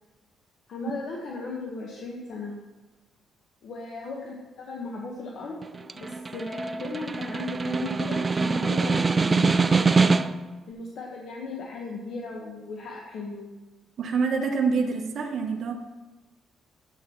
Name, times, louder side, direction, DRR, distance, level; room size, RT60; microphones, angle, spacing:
voice 1, 0.7-2.6 3.6-5.5 5.9-10.2 10.7-13.5, left 3 dB, 70° left, -2 dB, 1.2 m, -36 dB
Snare drum, 5.6-10.5, right 4 dB, 30° right, 0.4 m, -24 dB
voice 2, 14.0-15.7, right 5 dB, 60° right, 2 dB, 0.9 m, -26 dB
10.0 x 8.1 x 3.1 m, 1.2 s
cardioid pair, 90°, 0 cm